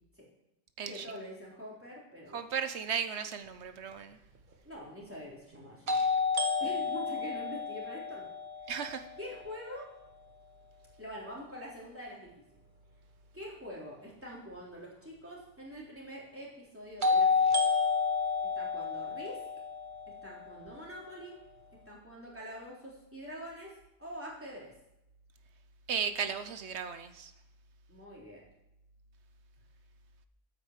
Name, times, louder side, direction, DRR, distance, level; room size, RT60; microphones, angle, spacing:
voice 1, 0.9-2.4 4.6-6.2 6.6-8.3 9.2-9.9 11.0-12.6 13.3-17.5 18.6-19.4 20.2-21.4 21.9-23.7 24.0-24.7 27.9-28.4, equal, 10° right, -5 dB, 3.8 m, -45 dB
voice 2, 2.3-4.2 8.7-9.0 25.9-27.3, right 7 dB, 80° right, 10 dB, 1.2 m, -35 dB
sound 1, 3.9-4.0 5.9-9.8 17.0-21.0, left 4 dB, 50° right, 1.2 m, -30 dB
9.4 x 9.1 x 7.5 m, 0.85 s
omnidirectional pair, 1.1 m